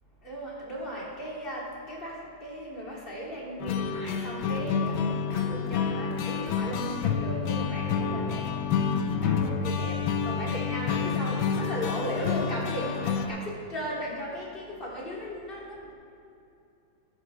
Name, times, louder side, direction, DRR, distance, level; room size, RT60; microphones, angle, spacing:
voice 1, 0.2-8.4 9.2-10.0 10.2-15.9, equal, 25° left, -5 dB, 2.8 m, -36 dB
sound 1, 3.6-13.3, left 6 dB, 90° left, 1.5 m, -28 dB
14.5 x 11.5 x 3.3 m, 2.7 s
omnidirectional pair, 2.1 m